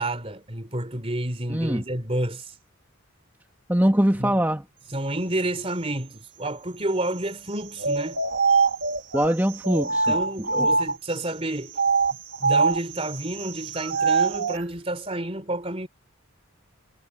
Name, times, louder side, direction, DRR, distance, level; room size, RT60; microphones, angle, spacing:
voice 1, 0.0-2.5 4.2-4.4 4.9-8.2 10.1-11.7 12.4-15.9, right 1 dB, 25° right, 3.5 m, -29 dB
voice 2, 1.5-1.8 3.7-4.6 9.1-10.1 10.5-10.7, equal, 10° right, 2.0 m, -22 dB
sound 1, 7.8-11.2 11.7-14.6, right 4 dB, 55° right, 2.4 m, -24 dB
head